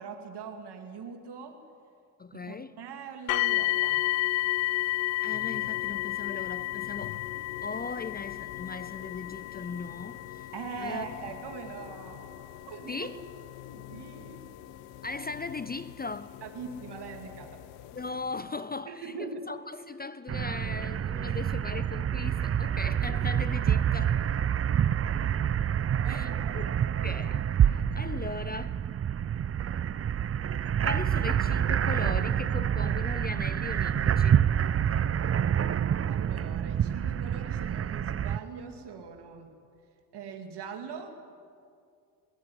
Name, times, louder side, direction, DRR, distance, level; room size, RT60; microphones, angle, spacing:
voice 1, 0.0-1.6 2.3-4.1 10.5-13.1 13.7-14.4 16.4-17.6 18.9-19.5 26.0-26.6 36.1-39.5 40.1-41.2, right 5 dB, 50° right, 4 dB, 2.6 m, -41 dB
voice 2, 2.2-2.8 5.2-7.2 7.6-10.5 10.8-11.1 12.9-13.2 15.0-16.4 17.9-24.2 26.1-26.7 27.0-28.8 30.8-34.4, left 4 dB, 20° left, 15 dB, 0.6 m, -38 dB
sound 1, 3.3-16.2 17.0-17.1 17.7-17.8, left 17 dB, 80° left, 0.8 m, -32 dB
sound 2, 5.3-18.5, left 11 dB, 55° left, 1.1 m, -48 dB
sound 3, 20.3-38.4, right 9 dB, 30° right, 0.6 m, -27 dB
21.0 x 16.5 x 9.8 m, 2.3 s
supercardioid pair, 75°, 50 cm